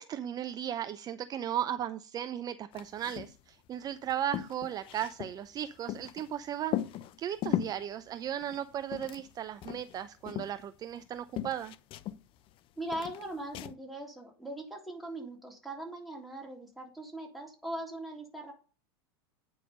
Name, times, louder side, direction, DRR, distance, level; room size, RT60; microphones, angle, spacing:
voice 1, 0.0-6.8 7.2-11.7, right 10 dB, 30° right, 13 dB, 0.5 m, -36 dB
sound 1, 2.7-3.4 3.7-3.8 4.0-6.3 6.7-7.8 8.4-9.4 9.6-11.1 11.4-12.6 12.9-13.7, left 12 dB, 40° left, 0.6 m, -37 dB
voice 2, 12.8-18.5, right 1 dB, ahead, -1 dB, 3.3 m, -40 dB
9.1 x 5.4 x 5.2 m, 0.37 s
hypercardioid pair, 100°, 13 cm